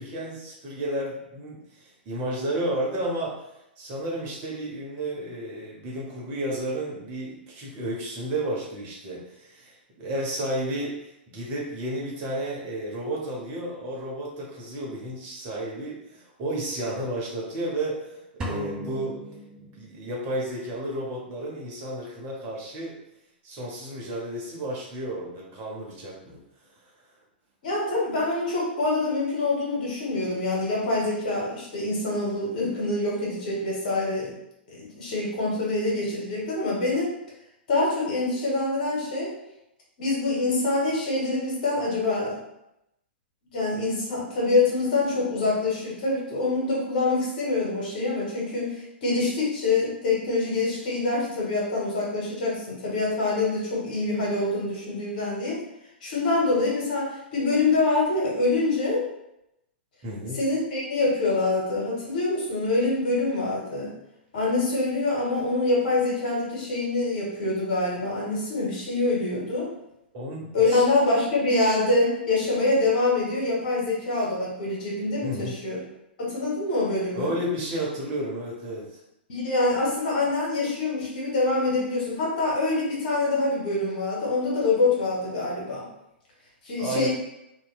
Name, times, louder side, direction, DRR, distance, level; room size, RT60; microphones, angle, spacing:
voice 1, 0.0-3.4 3.8-10.9 11.3-19.2 19.6-23.0 23.4-26.4 60.0-60.4 70.1-70.8 75.2-75.5 77.1-78.8 86.8-87.1, right 1 dB, 35° right, -3 dB, 0.8 m, -32 dB
sound 1, 18.4-20.2, right 1 dB, 15° right, 0.4 m, -36 dB
voice 2, 27.6-34.3 34.7-37.1 37.7-39.3 40.0-42.4 43.5-55.6 56.0-59.0 60.3-63.9 64.3-69.7 70.5-75.8 76.2-77.3 79.3-85.8 86.6-87.1, left 2 dB, 55° left, -4 dB, 1.1 m, -25 dB
2.7 x 2.3 x 2.2 m, 0.84 s
figure-of-eight pair, 105°, 6 cm